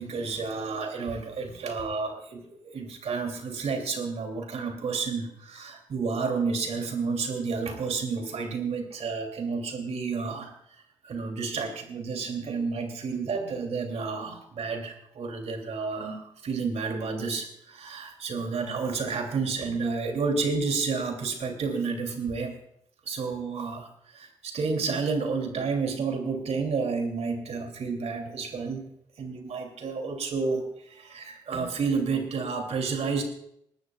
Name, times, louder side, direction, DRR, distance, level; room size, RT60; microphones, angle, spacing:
voice 1, 0.0-10.5 11.0-22.6 23.0-28.8 29.2-33.2, right 4 dB, 70° right, 4 dB, 3.1 m, -30 dB
20.5 x 13.0 x 2.5 m, 0.73 s
supercardioid pair, 45°, 12 cm